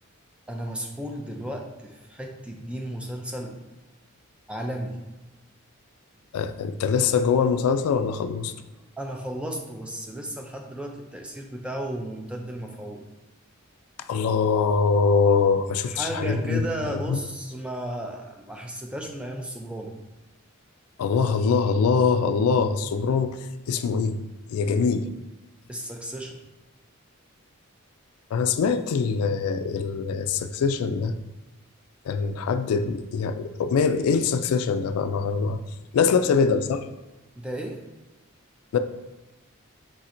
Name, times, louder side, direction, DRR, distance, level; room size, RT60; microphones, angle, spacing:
voice 1, 0.5-3.6 4.5-5.0 9.0-13.1 15.9-19.9 25.7-26.4 36.0-36.2 37.4-37.8, right 1 dB, 5° right, 2 dB, 0.4 m, -34 dB
voice 2, 6.3-8.5 14.1-16.6 16.9-17.2 21.0-23.4 23.7-24.2 24.5-25.1 28.3-31.2 32.1-35.6 35.9-36.8 38.7-38.8, left 5 dB, 85° left, 10 dB, 0.3 m, -23 dB
4.3 x 4.0 x 2.5 m, 1.1 s
head